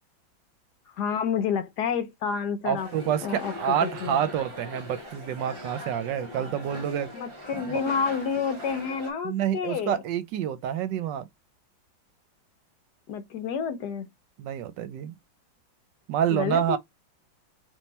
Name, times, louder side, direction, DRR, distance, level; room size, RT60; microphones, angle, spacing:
voice 1, 0.9-2.9 3.2-4.2 7.1-10.0 13.1-14.1 16.3-16.8, left 6 dB, 65° left, 1.1 m, -29 dB
voice 2, 2.6-7.1 7.7-7.8 9.2-11.3 14.4-15.1 16.1-16.8, right 9 dB, 75° right, 1.2 m, -28 dB
sound 1, 2.8-9.1, left 1 dB, 35° right, 1.1 m, -40 dB
3.6 x 2.9 x 4.1 m
omnidirectional pair, 2.1 m